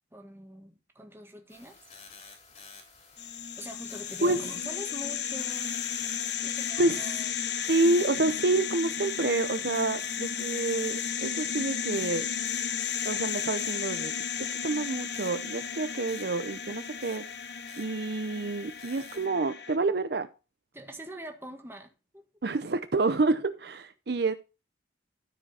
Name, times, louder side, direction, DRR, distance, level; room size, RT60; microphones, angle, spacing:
voice 1, 0.1-1.9 3.6-5.7 6.4-7.3 20.7-22.2, equal, 10° right, 1.5 m, -44 dB
sound 1, 1.5-19.3, left 4 dB, 40° left, 4.1 m, -52 dB
sound 2, 3.2-19.8, left 8 dB, 65° left, 0.9 m, -34 dB
voice 2, 7.7-12.3 13.0-14.1 14.4-17.2 17.8-20.3 22.4-24.3, right 2 dB, 60° right, 0.6 m, -28 dB
13.0 x 5.0 x 4.2 m
head